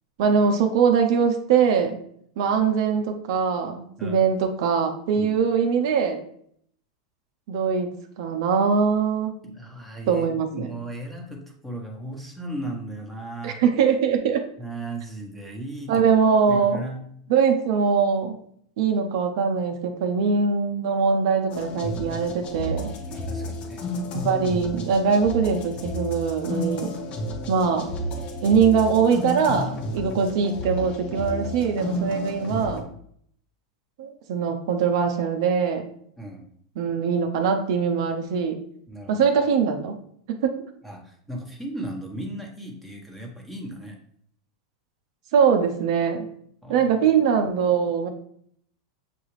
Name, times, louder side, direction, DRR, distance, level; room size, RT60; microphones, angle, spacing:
voice 1, 0.2-2.0 2.4-6.2 7.5-7.9 8.2-9.4 10.1-10.7 13.4-14.5 15.9-16.8 17.3-18.3 18.8-22.9 24.1-26.9 27.5-27.9 28.4-32.9 34.0-35.9 36.8-38.6 39.1-40.0 40.4-40.6 45.3-46.3 46.7-48.1, right 6 dB, 65° right, 5 dB, 0.6 m, -22 dB
voice 2, 9.4-13.6 14.6-16.0 16.5-17.1 23.0-23.8 36.2-36.5 38.9-39.3 40.8-44.0 46.6-46.9, right 1 dB, ahead, -1 dB, 1.1 m, -36 dB
sound 1, 21.5-32.8, left 1 dB, 40° left, 0.8 m, -32 dB
6.7 x 2.4 x 3.2 m, 0.65 s
hypercardioid pair, 115°, 3 cm